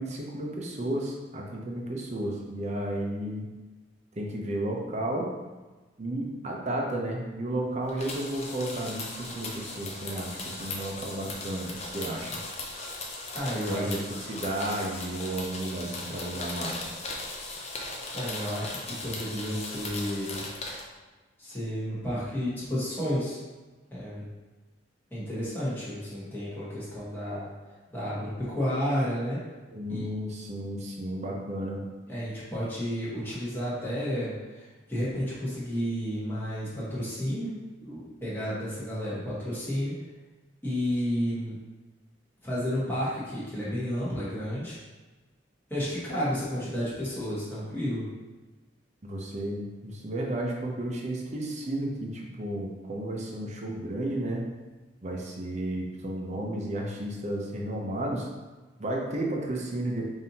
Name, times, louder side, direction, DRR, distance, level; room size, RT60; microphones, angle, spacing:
voice 1, 0.0-3.5 4.2-5.3 6.0-12.4 13.7-16.8 29.7-31.8 49.0-54.5 55.0-58.3 58.8-60.1, right 1 dB, 35° right, -1 dB, 0.6 m, -33 dB
sound 1, 7.9-20.8, left 2 dB, 30° left, 0.5 m, -38 dB
voice 2, 13.3-14.0 18.1-20.4 21.4-23.4 23.9-24.3 25.1-27.5 27.9-29.4 29.9-30.1 32.1-37.5 37.8-39.9 40.6-41.6 42.4-44.8 45.7-48.0, equal, 10° left, -9 dB, 1.2 m, -31 dB
5.3 x 2.7 x 2.8 m, 1.2 s
head